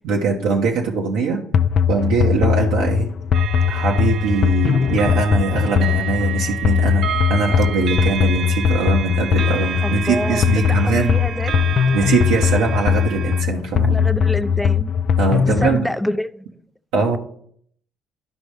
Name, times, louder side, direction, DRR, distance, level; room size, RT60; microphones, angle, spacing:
voice 1, 0.0-1.4 1.9-3.1 3.7-11.2 11.9-14.0 15.2-15.8 16.9-17.2, right 4 dB, 85° right, 1.1 m, -21 dB
sound 1, 1.5-15.8, left 8 dB, 55° left, 0.4 m, -20 dB
sound 2, 3.3-13.4, right 9 dB, 55° right, 0.3 m, -30 dB
voice 2, 9.8-11.7 13.8-14.9 15.5-16.4, left 1 dB, 5° left, 0.5 m, -27 dB
11.5 x 5.2 x 3.3 m
supercardioid pair, 75°, 0 cm